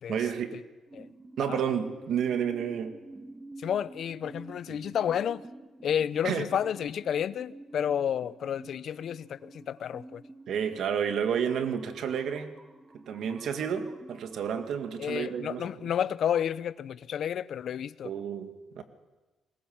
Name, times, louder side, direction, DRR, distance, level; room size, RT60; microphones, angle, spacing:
voice 1, 0.1-0.6 1.4-3.0 4.7-4.8 6.2-6.4 10.5-12.6 12.9-15.9 18.0-18.8, right 8 dB, 70° right, 7 dB, 2.0 m, -31 dB
sound 1, 0.9-15.5, right 2 dB, 15° right, 1.3 m, -50 dB
voice 2, 3.6-5.4 5.8-10.2 15.0-18.1, left 9 dB, 65° left, 17 dB, 0.7 m, -31 dB
21.5 x 19.0 x 7.3 m, 1.2 s
cardioid pair, 90°, 0 cm